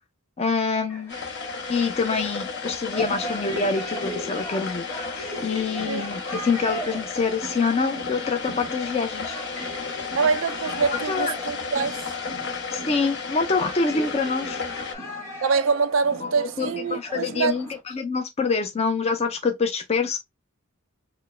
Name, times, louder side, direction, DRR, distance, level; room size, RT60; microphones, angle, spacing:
voice 1, 0.4-1.2 1.7-4.8 5.1-9.4 10.9-11.3 12.7-14.6 16.2-20.2, left 4 dB, 30° left, 0.4 m, -26 dB
sound 1, 0.9-17.8, equal, 15° left, 1.5 m, -38 dB
sound 2, 1.1-14.9, left 5 dB, 55° left, 0.8 m, -33 dB
voice 2, 10.2-12.0 15.4-17.5, right 5 dB, 65° right, 0.4 m, -24 dB
4.5 x 2.1 x 3.1 m
head